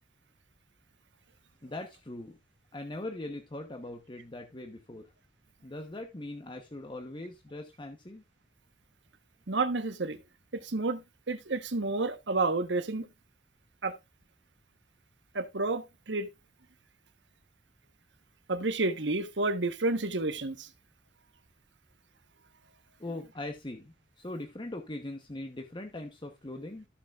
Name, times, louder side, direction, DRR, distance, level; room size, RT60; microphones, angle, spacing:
voice 1, 1.6-2.4 2.7-5.1 5.6-8.2 23.0-26.9, left 1 dB, 25° left, 1.0 m, -41 dB
voice 2, 9.5-10.2 10.6-11.0 11.3-13.1 13.8-14.0 15.3-16.3 18.5-20.7, right 3 dB, 85° right, 1.2 m, -30 dB
14.0 x 7.0 x 2.5 m
head